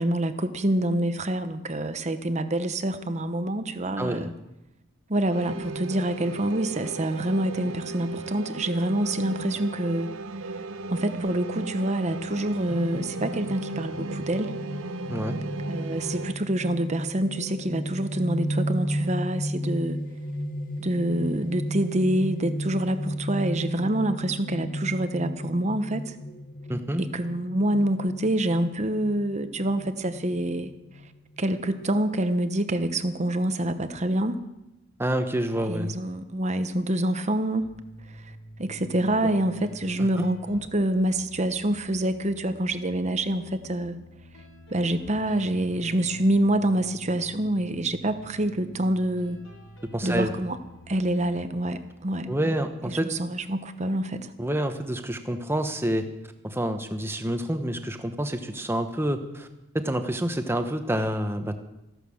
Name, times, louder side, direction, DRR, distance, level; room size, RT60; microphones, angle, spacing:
voice 1, 0.0-4.3 5.1-10.1 10.9-14.6 15.7-20.0 20.8-26.2 27.0-30.7 31.4-34.4 35.7-37.7 38.1-38.2 38.6-44.0 44.7-49.4 50.0-50.6 50.9-52.3 52.8-54.3, right 1 dB, 35° right, 10 dB, 0.9 m, -26 dB
voice 2, 4.0-4.3 15.1-15.4 26.7-27.0 35.0-35.9 39.2-39.3 40.0-40.3 49.9-50.3 52.3-53.1 54.4-56.1 56.4-59.5 59.7-61.6, right 1 dB, 10° right, 7 dB, 1.1 m, -28 dB
sound 1, 5.3-16.3, right 3 dB, 80° right, 0.9 m, -36 dB
sound 2, 12.7-31.9, equal, 40° left, 0.8 m, -34 dB
sound 3, 37.6-51.6, equal, 70° left, 4.7 m, -48 dB
14.5 x 11.5 x 7.1 m, 0.92 s
head